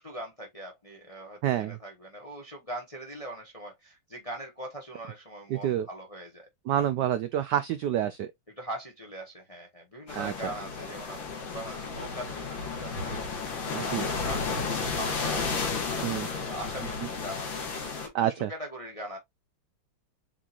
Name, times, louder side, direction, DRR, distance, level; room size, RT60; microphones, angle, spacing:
voice 1, 0.0-6.5 8.6-15.4 16.0-19.2, right 1 dB, 30° left, 0.6 m, -41 dB
voice 2, 1.4-1.8 5.5-5.9 6.7-8.3 10.1-10.5 13.7-14.1 16.0-16.3 18.1-18.5, right 11 dB, 90° right, 0.9 m, -28 dB
sound 1, 10.1-18.1, left 4 dB, 60° left, 2.2 m, -33 dB
7.4 x 2.9 x 2.4 m
omnidirectional pair, 2.4 m